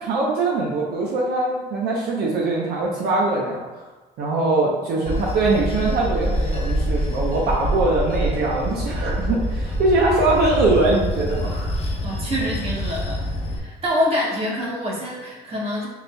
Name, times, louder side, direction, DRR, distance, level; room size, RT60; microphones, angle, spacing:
voice 1, 0.0-3.6 4.2-11.8, right 2 dB, 75° right, -3 dB, 0.7 m, -22 dB
voice 2, 4.6-5.2 12.0-13.2 13.5-15.9, equal, 35° right, -4 dB, 1.3 m, -26 dB
Bell / Train, 5.1-13.6, equal, 35° left, 0.7 m, -26 dB
6.8 x 2.6 x 2.2 m, 1.2 s
cardioid pair, 110°, 17 cm